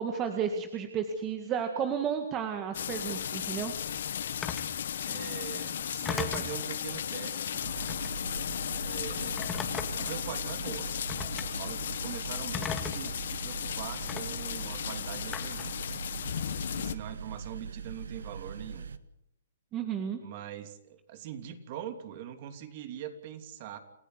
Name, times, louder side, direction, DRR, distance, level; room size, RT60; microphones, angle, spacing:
voice 1, 0.0-3.7 19.7-20.2, right 7 dB, 20° right, 6 dB, 2.0 m, -32 dB
sound 1, 2.7-17.0, left 9 dB, 65° left, 1.1 m, -35 dB
Telephone, 4.4-4.7 6.0-6.6 7.8-8.2 9.4-10.1 11.1-11.5 12.5-13.1 14.1-14.2 15.3-15.7, left 7 dB, 15° left, 2.3 m, -36 dB
voice 2, 4.7-7.7 8.8-9.4 10.0-10.9 11.3-16.0 16.7-18.9 20.2-23.8, right 10 dB, 40° right, 8 dB, 3.1 m, -42 dB
sound 2, 7.6-19.0, right 6 dB, 85° right, 1.5 m, -41 dB
28.5 x 15.5 x 8.2 m, 0.77 s
hypercardioid pair, 155°, 0 cm